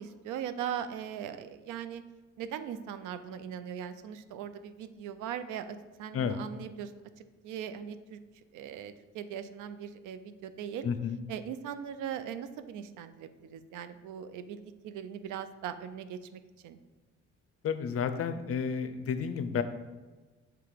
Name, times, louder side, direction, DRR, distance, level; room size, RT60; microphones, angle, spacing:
voice 1, 0.0-2.0 2.4-6.9 7.2-8.2 8.5-10.9 11.3-16.8, right 9 dB, 90° right, 11 dB, 0.5 m, -40 dB
voice 2, 10.8-11.2 17.6-19.6, left 6 dB, 50° left, 10 dB, 0.5 m, -31 dB
5.8 x 3.4 x 4.9 m, 1.3 s
cardioid pair, 90°, 30 cm